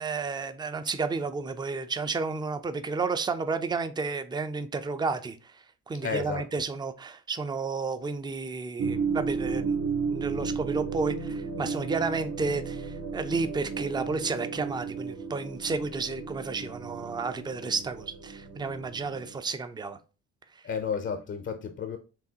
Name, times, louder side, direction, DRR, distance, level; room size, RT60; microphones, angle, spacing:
voice 1, 0.0-5.4 5.9-9.8 10.1-20.0, right 4 dB, 15° right, 0.4 m, -32 dB
voice 2, 6.0-6.5 20.6-22.0, left 6 dB, 40° left, 0.6 m, -32 dB
sound 1, 8.8-19.4, right 5 dB, 70° right, 1.0 m, -34 dB
4.7 x 2.9 x 2.7 m
cardioid pair, 90°, 30 cm